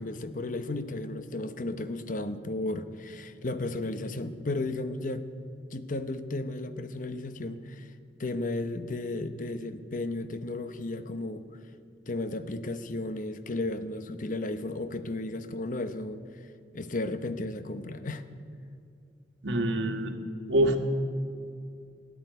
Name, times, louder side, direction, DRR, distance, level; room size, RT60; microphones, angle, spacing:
voice 1, 0.0-5.3 5.7-7.9 8.2-11.4 12.1-16.2 16.7-18.2, left 2 dB, 45° left, 11 dB, 0.8 m, -34 dB
voice 2, 19.4-20.2 20.5-20.8, right 1 dB, 80° right, 6 dB, 1.4 m, -25 dB
13.5 x 10.0 x 9.0 m, 2.4 s
head